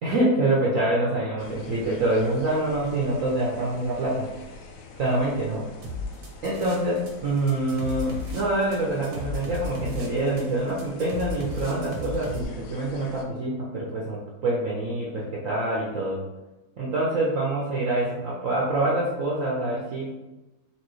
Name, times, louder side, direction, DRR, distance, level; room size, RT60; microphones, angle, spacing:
voice 1, 0.0-4.3 5.0-5.6 6.4-16.2 16.8-20.1, right 2 dB, 65° right, -5 dB, 0.8 m, -26 dB
sound 1, 1.4-13.2, left 3 dB, 90° left, 0.7 m, -46 dB
sound 2, 5.8-7.1 7.4-12.4, left 2 dB, 85° right, 1.5 m, -34 dB
4.5 x 2.5 x 3.1 m, 1.0 s
omnidirectional pair, 2.0 m